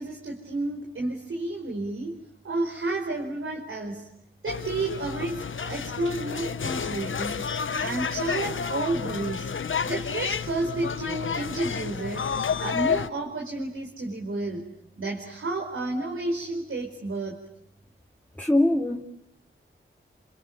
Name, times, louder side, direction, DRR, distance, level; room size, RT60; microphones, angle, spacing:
voice 1, 0.0-2.2 2.4-4.1 4.4-7.5 7.8-9.5 9.8-12.3 12.6-14.6 15.0-17.4, right 2 dB, 75° right, 1 dB, 4.9 m, -31 dB
sound 1, 4.5-13.1, left 6 dB, 70° left, 1.1 m, -30 dB
voice 2, 18.4-19.0, left 1 dB, 5° left, 1 dB, 2.8 m, -22 dB
29.0 x 28.0 x 7.4 m, 0.77 s
cardioid pair, 45°, 21 cm